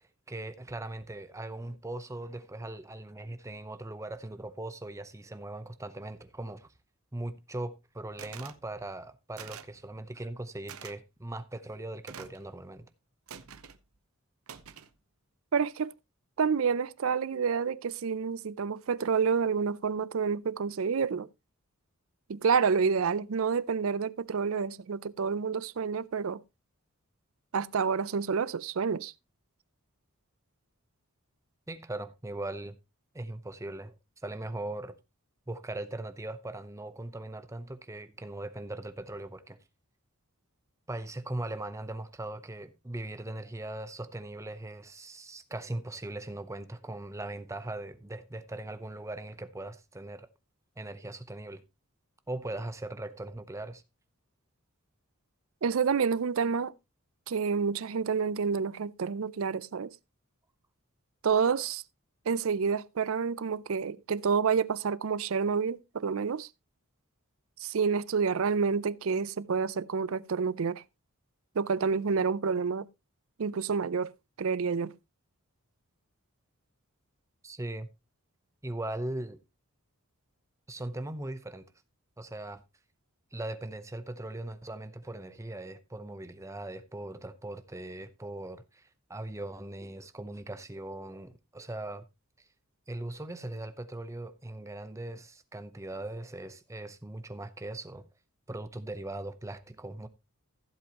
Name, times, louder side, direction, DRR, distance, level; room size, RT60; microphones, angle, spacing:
voice 1, 0.0-6.7 7.1-12.9 31.7-32.7 33.1-34.0 34.2-34.9 35.5-39.6 40.9-50.3 50.8-51.6 52.3-53.8 77.4-77.9 78.6-79.4 80.7-81.7 82.2-82.6 83.3-92.0 92.9-98.1 98.5-100.1, right 1 dB, 15° right, 0.7 m, -39 dB
sound 1, 8.2-8.6 9.4-9.8 10.7-10.9 12.1-12.4 13.3-13.8 14.5-14.9, right 7 dB, 85° right, 0.9 m, -46 dB
voice 2, 15.5-15.9 16.4-21.3 22.3-26.4 27.5-29.1 55.6-56.7 57.3-59.9 61.2-61.8 62.3-66.5 67.6-70.8 71.6-72.9 73.4-74.1 74.4-74.9, right 5 dB, 70° right, 0.5 m, -28 dB
15.0 x 7.8 x 2.9 m
head